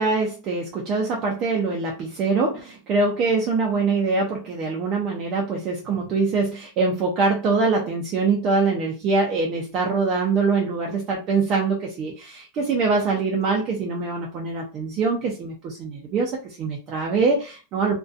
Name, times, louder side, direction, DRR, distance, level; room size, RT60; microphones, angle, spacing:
voice 1, 0.0-18.0, right 4 dB, 30° right, 0 dB, 0.4 m, -23 dB
2.5 x 2.2 x 2.4 m, 0.33 s
supercardioid pair, 160°, 0 cm